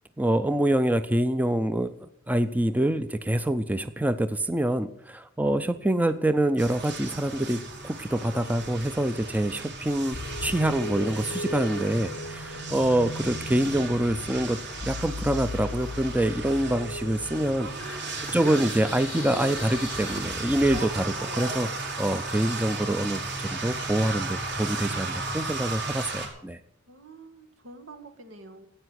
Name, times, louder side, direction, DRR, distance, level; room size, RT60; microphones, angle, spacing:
voice 1, 0.2-1.9 2.3-17.7 18.3-26.6, right 1 dB, 10° right, 11 dB, 0.5 m, -26 dB
sound 1, 6.6-26.3, right 3 dB, 55° right, 4.1 m, -35 dB
sound 2, 10.1-20.8, left 2 dB, 80° left, 0.7 m, -38 dB
voice 2, 17.6-18.6 26.9-28.7, right 3 dB, 85° right, 5 dB, 2.1 m, -46 dB
14.5 x 9.1 x 7.8 m, 0.77 s
head